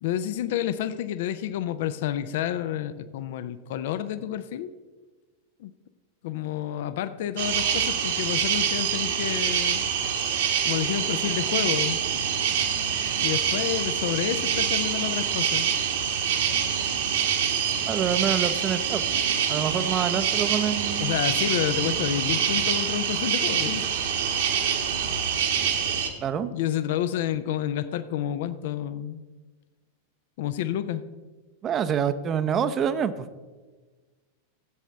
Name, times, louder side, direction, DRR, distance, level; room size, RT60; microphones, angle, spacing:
voice 1, 0.0-4.7 5.6-5.7 6.2-9.8 10.6-12.0 13.2-15.7 21.0-23.9 26.5-29.2 30.4-31.0, left 11 dB, 55° left, 14 dB, 0.5 m, -29 dB
sound 1, 7.4-26.1, right 8 dB, 60° right, 1.2 m, -26 dB
voice 2, 17.9-19.0 19.5-21.2 26.2-26.5 31.6-33.3, right 8 dB, 30° right, 12 dB, 0.6 m, -26 dB
15.0 x 8.2 x 3.4 m, 1.3 s
figure-of-eight pair, 90°, 0 cm